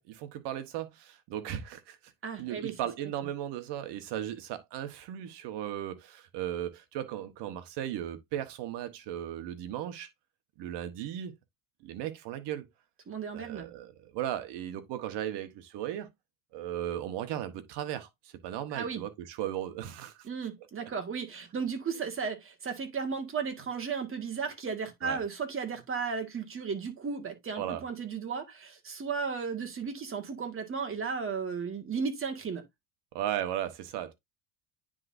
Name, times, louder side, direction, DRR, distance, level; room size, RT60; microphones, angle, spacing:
voice 1, 0.1-2.1 2.4-10.1 10.6-11.3 11.8-12.6 13.3-16.1 16.5-20.3 20.8-20.9 25.0-25.2 27.6-27.8 33.1-34.1, right 11 dB, 60° right, 1.3 m, -36 dB
voice 2, 2.2-2.7 13.1-13.7 18.7-19.0 20.2-32.6, right 5 dB, 25° right, 1.8 m, -35 dB
9.7 x 3.8 x 2.6 m
supercardioid pair, 110°, 47 cm